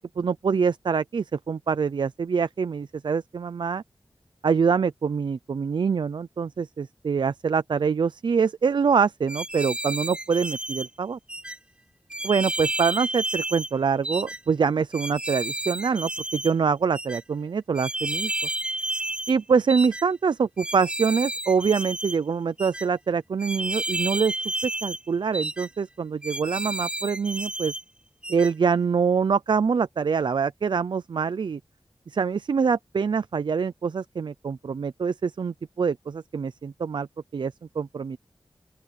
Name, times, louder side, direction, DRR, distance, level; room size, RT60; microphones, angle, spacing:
voice 1, 0.2-3.8 4.4-11.2 12.2-18.3 19.3-24.3 24.6-27.7 28.3-31.6 32.1-37.1 37.3-38.2, right 5 dB, 75° right, 0.6 m, -25 dB
sound 1, 9.3-10.9 11.3-11.6 12.1-13.7 14.0-14.4 14.9-16.5 16.9-17.2 17.7-19.4 19.7-20.0 20.6-22.2 22.6-22.9 23.4-25.0 25.3-25.7 26.2-27.8 28.2-28.5, right 1 dB, 15° right, 0.4 m, -31 dB
open air
wide cardioid pair, 85°, 8 cm